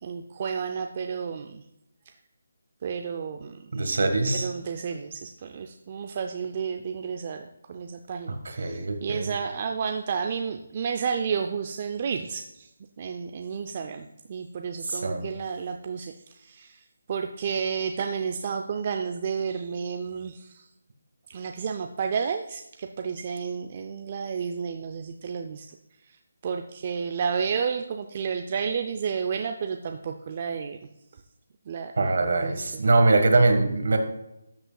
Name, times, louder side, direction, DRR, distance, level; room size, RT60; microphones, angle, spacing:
voice 1, 0.0-1.6 2.8-3.9 4.3-12.7 13.0-20.7 21.3-30.8 31.1-31.2 31.7-32.8, right 6 dB, 25° right, 5 dB, 0.4 m, -31 dB
voice 2, 3.7-4.5 8.6-9.3 15.0-15.2 32.0-34.0, right 3 dB, 55° right, 6 dB, 1.5 m, -22 dB
12.0 x 7.9 x 2.3 m, 0.89 s
hypercardioid pair, 175°, 0 cm